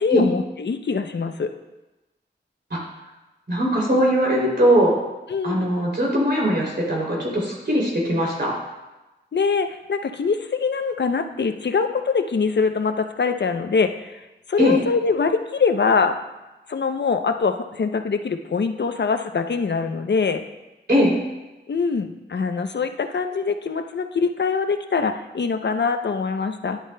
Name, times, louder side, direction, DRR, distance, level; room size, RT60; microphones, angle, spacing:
voice 1, 0.0-1.5 5.3-5.7 9.3-16.2 16.7-20.4 21.7-26.8, left 5 dB, 65° left, 7 dB, 0.6 m, -23 dB
voice 2, 3.5-5.0 5.4-8.5 14.6-14.8 20.9-21.1, equal, 60° right, -3 dB, 2.9 m, -20 dB
11.5 x 8.1 x 2.2 m, 1.1 s
wide cardioid pair, 55°, 19 cm